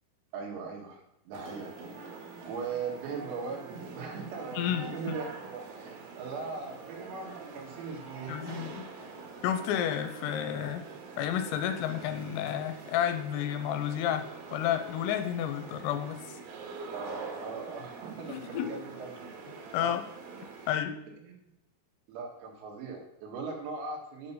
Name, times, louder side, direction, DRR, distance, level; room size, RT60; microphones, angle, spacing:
voice 1, 0.3-1.7 2.5-3.6 3.9-8.7 16.9-19.3 19.8-19.9 21.3-21.4 22.1-24.3, right 4 dB, 90° right, -1 dB, 4.6 m, -39 dB
sound 1, 1.3-20.8, right 4 dB, 70° right, 2.4 m, -45 dB
voice 2, 4.6-5.2 8.3-8.8 9.4-10.8 11.2-16.2 18.3-18.7 19.7-20.0 20.7-20.9, left 10 dB, 85° left, 8 dB, 3.3 m, -31 dB
9.2 x 5.5 x 5.6 m, 0.82 s
omnidirectional pair, 6.0 m